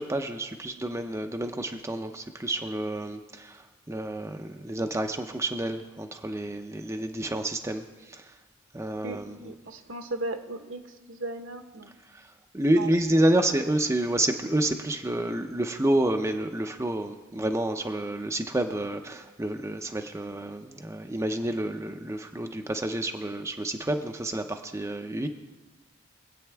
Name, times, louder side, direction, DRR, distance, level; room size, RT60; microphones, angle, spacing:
voice 1, 0.0-8.4 8.7-9.4 12.1-25.3, right 1 dB, 15° right, 5 dB, 0.5 m, -29 dB
voice 2, 9.0-10.8 11.1-11.9 12.7-12.9, right 2 dB, 70° right, 6 dB, 1.2 m, -36 dB
23.5 x 8.4 x 3.5 m, 1.2 s
head